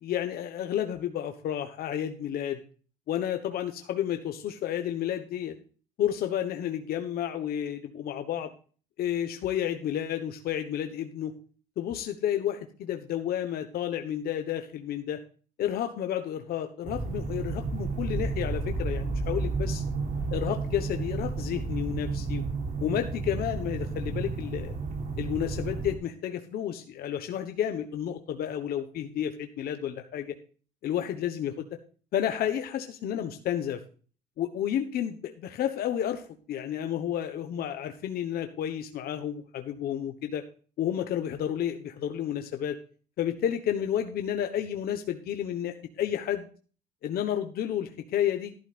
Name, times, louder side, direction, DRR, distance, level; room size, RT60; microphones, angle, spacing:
voice 1, 0.0-2.6 3.1-5.5 6.0-8.5 9.0-11.3 11.8-15.2 15.6-19.8 20.3-22.4 22.8-24.7 25.2-30.4 30.8-31.7 32.1-33.8 34.4-36.2 36.5-40.4 40.8-42.8 43.2-46.5 47.0-48.5, left 10 dB, 65° left, 6 dB, 1.2 m, -31 dB
sound 1, 16.8-26.0, right 3 dB, 50° right, 3.8 m, -32 dB
13.0 x 12.0 x 2.5 m, 0.39 s
cardioid pair, 110°, 17 cm